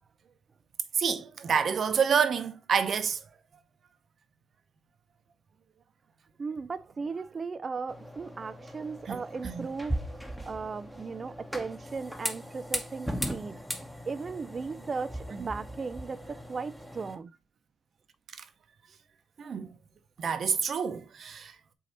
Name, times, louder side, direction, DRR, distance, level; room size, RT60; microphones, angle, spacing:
voice 1, 0.9-3.3 9.1-9.7 15.4-15.5 18.4-18.5 19.4-19.8 20.2-21.6, right 6 dB, 55° right, 0.8 m, -28 dB
voice 2, 6.4-13.6 14.1-17.3, right 4 dB, 35° right, 0.4 m, -37 dB
sound 1, 7.9-17.2, equal, ahead, 1.1 m, -38 dB
8.1 x 2.8 x 4.3 m
cardioid pair, 90°, 0 cm